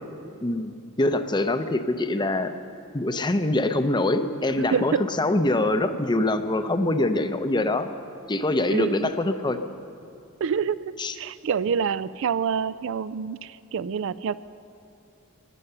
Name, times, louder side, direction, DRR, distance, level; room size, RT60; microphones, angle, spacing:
voice 1, 0.4-0.7 1.0-2.5 2.9-7.9 8.3-9.6 11.0-11.1, left 2 dB, 20° left, 9 dB, 0.6 m, -24 dB
voice 2, 4.6-5.1 8.7-9.1 10.4-14.4, right 6 dB, 65° right, 16 dB, 0.4 m, -27 dB
19.5 x 9.9 x 6.8 m, 2.6 s
head